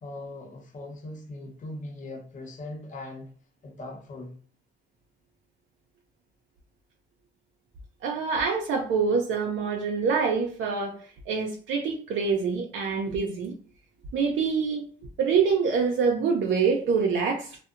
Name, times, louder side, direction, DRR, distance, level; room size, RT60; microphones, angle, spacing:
voice 1, 0.0-3.3 3.6-4.3, left 2 dB, 40° left, 0.7 m, -40 dB
voice 2, 8.0-11.0 11.3-13.5 14.1-14.8 15.2-17.6, right 5 dB, 75° right, 0.5 m, -25 dB
2.7 x 2.1 x 2.4 m
cardioid pair, 90°, 20 cm